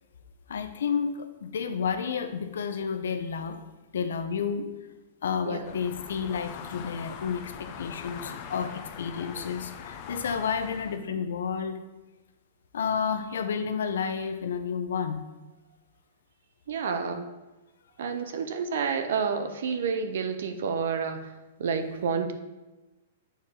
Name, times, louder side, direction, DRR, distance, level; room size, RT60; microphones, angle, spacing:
voice 1, 0.5-3.6 3.9-4.7 5.2-11.8 12.7-15.2, left 6 dB, 85° left, 8 dB, 0.7 m, -31 dB
sound 1, 5.6-11.0, left 7 dB, 40° left, 0.5 m, -42 dB
voice 2, 16.7-17.3 18.0-21.3 21.6-22.3, right 6 dB, 75° right, 8 dB, 0.7 m, -29 dB
7.1 x 4.4 x 3.7 m, 1.1 s
hypercardioid pair, 155°, 0 cm